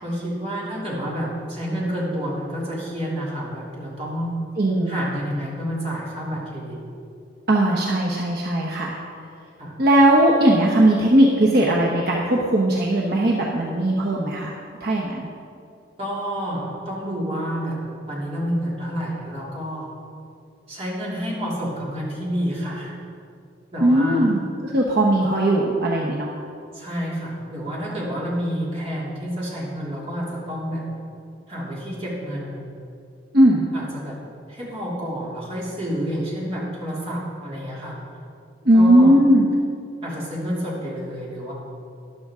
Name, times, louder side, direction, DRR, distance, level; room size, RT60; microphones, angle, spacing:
voice 1, 0.0-4.3 4.9-6.8 9.6-9.7 16.0-17.8 18.1-19.9 20.7-23.0 23.7-24.3 26.7-30.8 31.5-32.7 33.7-34.2 34.5-38.0 38.7-39.1 40.0-41.5, equal, 30° right, -5 dB, 3.0 m, -29 dB
voice 2, 4.6-5.0 7.5-8.9 9.8-14.5 14.8-15.3 23.8-26.3 33.3-33.7 38.6-39.5, right 1 dB, 55° right, -2 dB, 1.1 m, -18 dB
13.0 x 11.0 x 3.7 m, 2.4 s
head